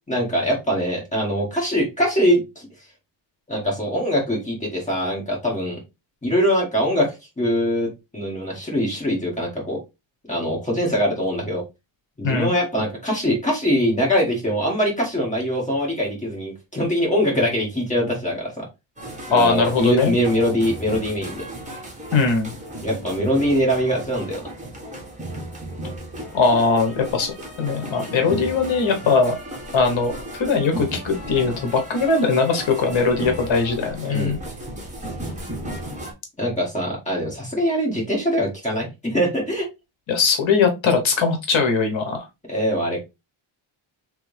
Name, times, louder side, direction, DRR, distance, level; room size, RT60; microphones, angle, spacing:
voice 1, 0.1-2.7 3.5-5.8 6.2-9.8 10.3-11.6 12.2-18.7 19.3-21.5 22.8-24.5 34.1-34.4 36.4-39.7 42.5-43.0, equal, 15° left, -2 dB, 1.7 m, -23 dB
sound 1, 19.0-36.1, right 1 dB, 15° right, 1.2 m, -35 dB
voice 2, 19.3-20.1 22.1-22.5 26.3-29.4 29.7-34.4 40.1-42.2, left 4 dB, 65° left, 5 dB, 1.1 m, -20 dB
3.4 x 3.4 x 3.2 m, 0.23 s
wide cardioid pair, 155°, 49 cm